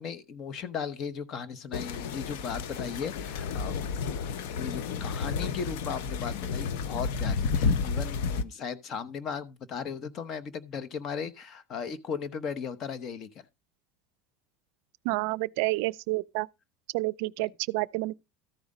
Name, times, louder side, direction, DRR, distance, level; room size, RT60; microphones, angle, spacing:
voice 1, 0.0-3.7 4.6-13.4, left 6 dB, 40° left, 0.9 m, -37 dB
sound 1, 1.7-8.4, left 5 dB, 75° left, 0.8 m, -31 dB
voice 2, 15.0-16.5 16.9-18.1, right 22 dB, 70° right, 0.4 m, -29 dB
13.5 x 4.9 x 5.3 m
supercardioid pair, 140°, 0 cm